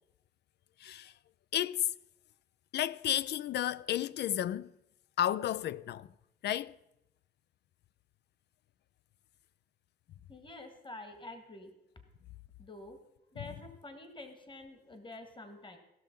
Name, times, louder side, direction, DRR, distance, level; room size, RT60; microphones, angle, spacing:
voice 1, 0.8-1.1 1.5-1.9 2.7-4.7 5.2-6.1 6.4-6.8, left 11 dB, 60° left, 0.4 m, -32 dB
voice 2, 10.3-11.7 12.6-13.0 13.3-15.8, left 2 dB, 25° left, 1.7 m, -48 dB
16.0 x 6.4 x 5.3 m
cardioid pair, 90°, 20 cm